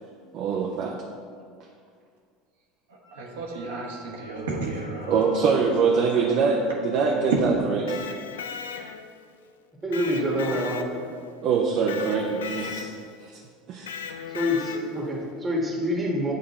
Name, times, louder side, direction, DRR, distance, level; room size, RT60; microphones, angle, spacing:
voice 1, 0.3-1.0 5.1-8.1 11.4-12.9 13.2-13.3 13.7-13.9, right 5 dB, 55° right, -1 dB, 0.6 m, -24 dB
voice 2, 2.9-5.1 6.2-6.5, right 2 dB, 85° right, -3 dB, 1.1 m, -34 dB
Wind instrument woodwind instrument, 3.0-7.1, equal, ahead, 1.5 m, -49 dB
Electric guitar, 7.7-9.2 9.9-11.3 11.9-13.2 13.9-15.1, left 7 dB, 85° left, 0.3 m, -37 dB
voice 3, 9.8-10.9 14.3-16.3, equal, 15° right, -1 dB, 1.5 m, -26 dB
7.8 x 3.7 x 4.2 m, 2.2 s
hypercardioid pair, 85°, 0 cm